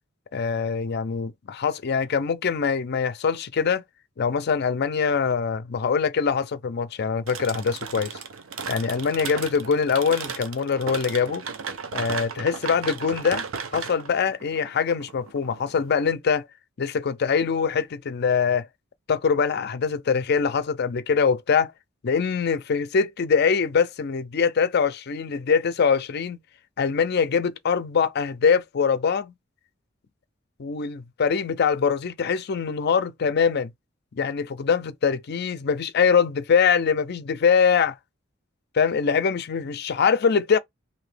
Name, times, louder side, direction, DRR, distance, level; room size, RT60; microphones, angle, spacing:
voice 1, 0.3-3.8 4.2-8.2 8.7-11.4 11.9-13.4 13.7-16.5 16.8-18.7 19.1-21.7 22.0-26.4 26.8-29.3 30.6-33.7 34.1-38.0 38.7-40.6, left 6 dB, 55° left, 0.5 m, -23 dB
sound 1, 7.3-15.9, right 6 dB, 75° right, 0.6 m, -35 dB
2.9 x 2.7 x 3.2 m
head